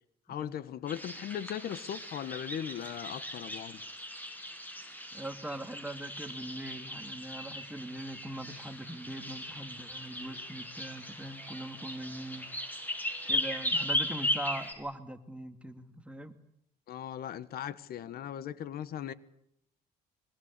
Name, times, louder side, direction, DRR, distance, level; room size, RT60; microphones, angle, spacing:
voice 1, 0.3-3.8 16.9-19.1, left 10 dB, 65° left, 1.6 m, -38 dB
sound 1, 0.9-14.7, left 1 dB, 10° left, 7.3 m, -37 dB
voice 2, 5.1-12.5 13.3-16.4, right 1 dB, 5° right, 2.4 m, -41 dB
25.5 x 23.5 x 8.4 m
cardioid pair, 110°, 17 cm